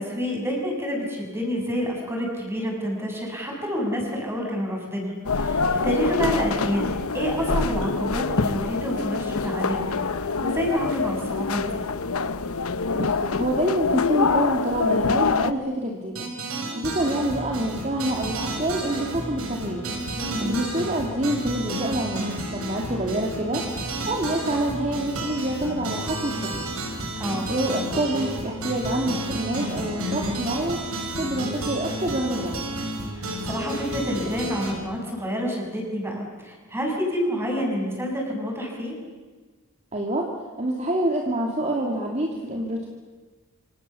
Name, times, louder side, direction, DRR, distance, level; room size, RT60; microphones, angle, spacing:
voice 1, 0.0-10.1 10.4-11.8 20.2-20.6 27.2-27.5 33.1-39.0, equal, 10° right, 0 dB, 7.2 m, -28 dB
sound 1, 5.2-15.5, left 4 dB, 85° left, 1.0 m, -25 dB
voice 2, 12.9-16.3 16.7-19.9 20.4-26.6 27.5-32.5 39.9-40.3 40.6-42.9, right 1 dB, 30° right, 0 dB, 2.7 m, -27 dB
sound 2, 16.1-34.7, right 1 dB, 85° right, 6.4 m, -31 dB
27.0 x 26.5 x 7.1 m, 1.4 s
head